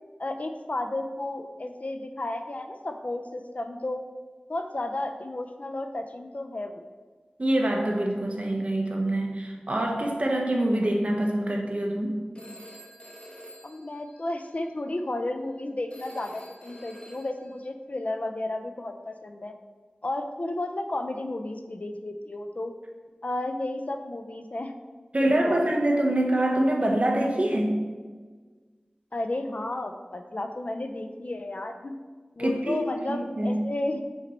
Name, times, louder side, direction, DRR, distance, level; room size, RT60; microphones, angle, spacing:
voice 1, 0.2-4.0 4.5-6.8 13.6-19.5 20.0-22.7 23.2-24.7 25.2-25.6 29.1-31.9 32.4-34.0, left 2 dB, 55° left, 6 dB, 0.5 m, -33 dB
voice 2, 7.4-12.2 25.1-27.9 32.4-33.6, right 1 dB, 45° right, 1 dB, 0.9 m, -25 dB
Telephone, 12.3-14.7 15.9-17.6, equal, 40° left, 1.2 m, -48 dB
5.9 x 4.0 x 4.3 m, 1.4 s
wide cardioid pair, 55°, 3 cm